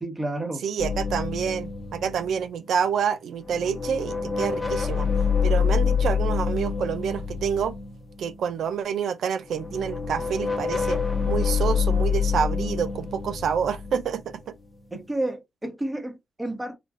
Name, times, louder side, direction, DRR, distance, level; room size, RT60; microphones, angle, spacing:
voice 1, 0.0-0.6 14.9-16.8, right 1 dB, 15° right, 1.0 m, -30 dB
voice 2, 0.6-5.1 5.4-7.8 8.2-11.0 11.2-14.2 14.5-14.6, right 7 dB, 90° right, 0.4 m, -27 dB
sound 1, 0.8-3.0 3.4-8.5 9.5-14.9, left 6 dB, 25° left, 0.9 m, -27 dB
3.5 x 2.3 x 2.5 m
wide cardioid pair, 120°, 0 cm